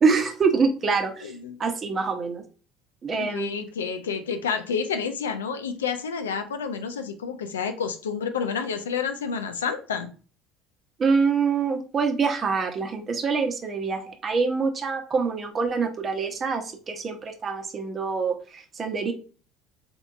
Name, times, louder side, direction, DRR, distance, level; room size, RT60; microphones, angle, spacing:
voice 1, 0.0-1.3 1.6-2.4 3.0-3.6 11.0-19.1, right 5 dB, 35° right, 5 dB, 0.9 m, -25 dB
voice 2, 1.2-1.6 3.2-10.1, left 6 dB, 85° left, 7 dB, 0.5 m, -29 dB
3.9 x 3.6 x 2.4 m, 0.37 s
hypercardioid pair, 65°, 0 cm